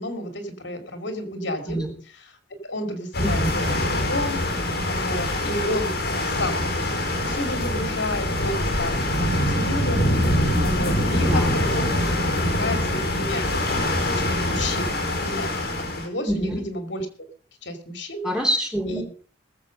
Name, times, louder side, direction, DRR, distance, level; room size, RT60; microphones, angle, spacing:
voice 1, 0.0-1.8 2.1-2.4 2.6-12.1 12.3-17.1 17.6-18.2 18.9-19.0, left 1 dB, 70° left, 6 dB, 2.8 m, -32 dB
sound 1, 3.1-16.1, left 1 dB, 55° left, 4.6 m, -24 dB
voice 2, 3.2-3.6 11.2-11.5 16.3-16.6 18.2-19.0, equal, 5° right, 0 dB, 3.3 m, -25 dB
20.5 x 7.5 x 5.3 m, 0.41 s
head